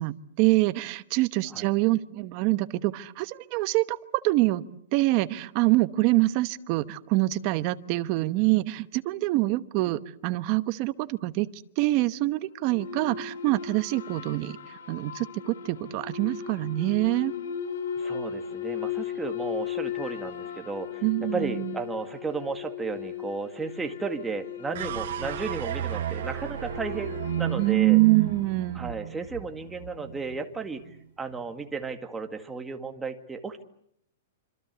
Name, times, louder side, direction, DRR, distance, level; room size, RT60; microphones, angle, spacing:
voice 1, 0.0-4.6 4.9-11.5 11.8-14.6 14.9-17.3 21.0-21.7 27.6-28.9, right 19 dB, 30° right, 13 dB, 1.1 m, -25 dB
sound 1, 12.6-29.2, left 8 dB, 70° left, 5.1 m, -37 dB
voice 2, 17.9-21.0 21.3-28.0 28.7-30.8 31.2-33.6, right 4 dB, 5° right, 5 dB, 2.0 m, -34 dB
sound 2, 24.7-31.1, right 10 dB, 55° right, 1.3 m, -34 dB
26.5 x 26.0 x 8.1 m, 0.70 s
hypercardioid pair, 170°, 0 cm